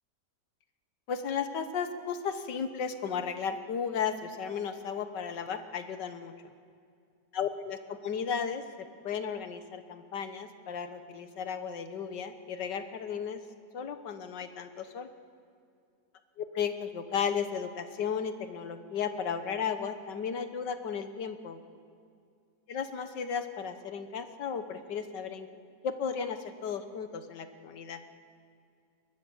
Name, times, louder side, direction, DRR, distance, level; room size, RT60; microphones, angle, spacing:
voice 1, 1.1-6.5 7.3-8.6 9.0-13.4 13.7-15.1 16.4-21.6 22.7-25.5 25.8-28.0, left 7 dB, 85° left, 9 dB, 1.8 m, -34 dB
22.5 x 20.5 x 7.2 m, 2.4 s
omnidirectional pair, 1.8 m